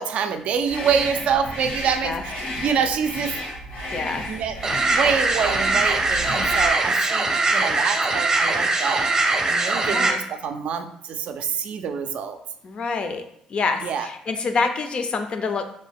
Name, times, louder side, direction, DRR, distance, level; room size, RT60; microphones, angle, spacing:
voice 1, 0.0-2.3 2.6-3.3 4.3-4.6 4.9-9.1 9.5-12.4 13.8-14.1, right 6 dB, 65° right, 7 dB, 0.3 m, -26 dB
sound 1, 0.6-6.8, equal, 90° left, 1.4 m, -33 dB
voice 2, 3.9-4.3 9.9-10.2 12.6-13.2 13.5-15.7, left 4 dB, 50° left, 7 dB, 0.4 m, -26 dB
sound 2, 4.6-10.1, right 3 dB, 30° right, 0.7 m, -21 dB
2.6 x 2.2 x 3.4 m, 0.68 s
supercardioid pair, 75°, 2 cm